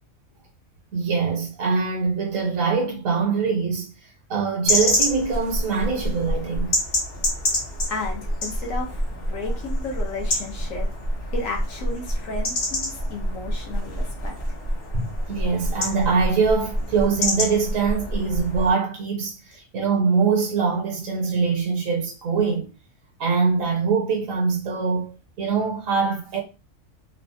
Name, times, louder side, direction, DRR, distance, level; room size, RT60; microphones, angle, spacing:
voice 1, 0.9-6.7 13.0-13.1 14.9-22.7 23.2-26.4, right 5 dB, 85° right, 1.1 m, -23 dB
sound 1, 4.7-18.7, left 1 dB, 45° left, 0.8 m, -27 dB
voice 2, 7.9-10.9 11.3-14.4, left 3 dB, 75° left, 1.3 m, -33 dB
3.2 x 2.1 x 2.7 m
omnidirectional pair, 1.4 m